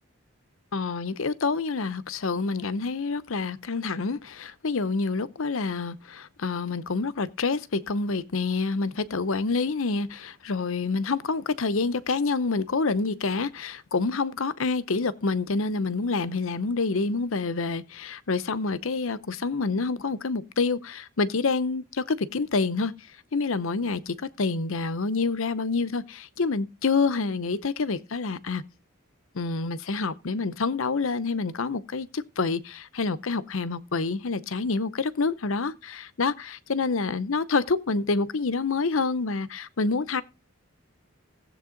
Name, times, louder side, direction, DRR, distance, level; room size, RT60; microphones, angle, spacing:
voice 1, 0.7-22.9 23.3-28.6 29.3-40.2, left 4 dB, 70° left, 0.8 m, -27 dB
16.0 x 7.8 x 3.8 m
head